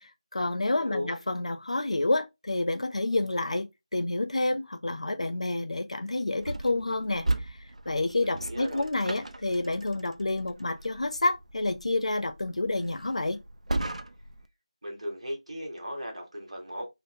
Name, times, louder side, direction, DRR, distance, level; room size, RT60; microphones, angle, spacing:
voice 1, 0.0-7.6 7.9-13.4, left 2 dB, 65° left, 0.5 m, -29 dB
voice 2, 0.6-1.2 8.2-8.9 14.8-16.9, equal, 60° right, 1.2 m, -37 dB
sound 1, 6.4-14.5, right 2 dB, 80° right, 0.4 m, -37 dB
3.8 x 2.1 x 2.6 m
figure-of-eight pair, 170°, 4 cm